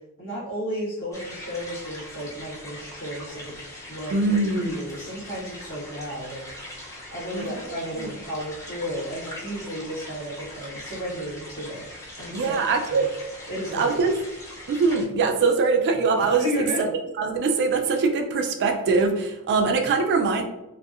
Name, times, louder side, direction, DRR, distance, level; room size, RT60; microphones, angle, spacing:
voice 1, 0.2-3.6 3.9-4.1 4.7-11.8 12.2-12.6 12.9-13.1 13.5-14.0 16.4-16.9, equal, 75° left, -10 dB, 1.2 m, -33 dB
sound 1, 1.1-15.1, left 1 dB, 15° left, 0.5 m, -41 dB
voice 2, 4.1-4.8 7.3-8.1 12.3-13.1 13.7-14.1 14.7-16.9 17.2-20.4, right 4 dB, 50° right, 5 dB, 0.3 m, -23 dB
2.6 x 2.0 x 2.3 m, 0.95 s
head